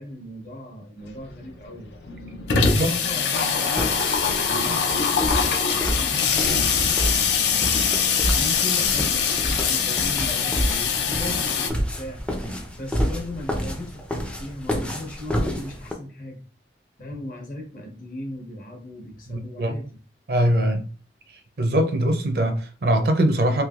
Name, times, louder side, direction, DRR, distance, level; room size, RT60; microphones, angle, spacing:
voice 1, 0.0-2.0 2.6-3.9 4.4-7.8 8.2-12.2 12.7-16.4 17.0-19.9, left 1 dB, 50° left, 0.8 m, -37 dB
Water tap faucet / Sink (filling or washing), 1.1-1.2 1.4-1.5 1.8-11.7, left 6 dB, 75° left, 0.5 m, -23 dB
voice 2, 2.5-3.0 19.3-19.8 20.3-20.9 21.6-23.6, right 1 dB, 55° right, 0.5 m, -22 dB
sound 1, 3.8-15.9, equal, 5° left, 0.3 m, -29 dB
3.2 x 2.8 x 2.3 m
head